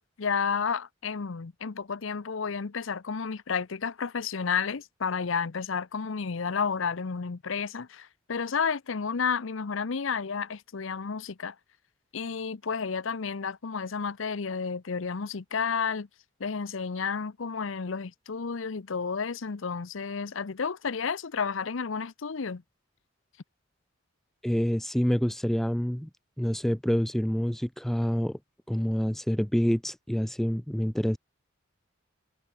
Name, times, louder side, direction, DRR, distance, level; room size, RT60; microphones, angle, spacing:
voice 1, 0.0-11.6 12.1-16.1 16.4-22.6, left 5 dB, 75° left, 0.7 m, -31 dB
voice 2, 24.4-26.1 26.4-28.4 28.7-31.2, equal, ahead, 0.3 m, -27 dB
head